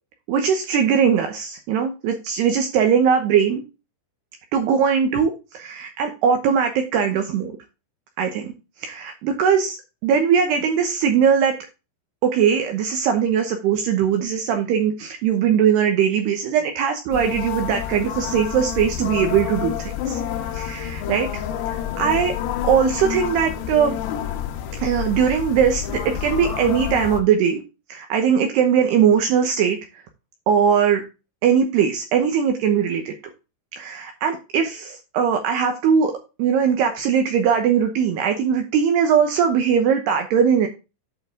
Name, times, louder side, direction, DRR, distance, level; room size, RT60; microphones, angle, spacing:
voice 1, 0.3-3.6 4.5-7.5 8.2-8.5 8.8-9.8 10.0-11.6 12.2-20.2 20.5-21.3 21.7-22.3 22.6-24.0 24.8-27.6 27.9-29.8 30.5-31.0 31.4-33.1 33.8-36.1 36.4-40.7, right 7 dB, 80° right, 5 dB, 2.4 m, -20 dB
sound 1, 17.1-27.2, left 10 dB, 85° left, 3.9 m, -28 dB
9.1 x 5.5 x 3.6 m, 0.28 s
omnidirectional pair, 6.0 m